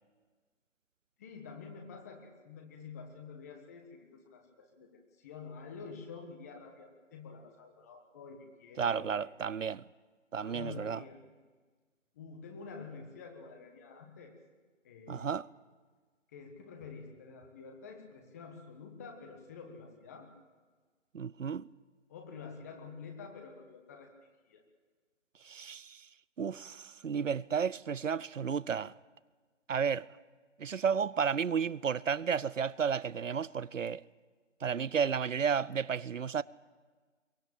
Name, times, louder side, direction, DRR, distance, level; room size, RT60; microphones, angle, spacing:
voice 1, 1.2-4.9 5.2-9.3 10.4-11.2 12.1-14.3 14.8-15.3 16.3-20.3 22.1-24.1 24.5-24.6, left 5 dB, 15° left, 1.3 m, -48 dB
voice 2, 8.8-9.8 10.3-11.0 15.1-15.5 21.1-21.6 25.5-26.0 26.4-28.9 29.7-30.1 30.6-34.0 34.6-36.4, right 6 dB, 75° right, 0.7 m, -32 dB
23.0 x 17.0 x 8.8 m
figure-of-eight pair, 165°, 38 cm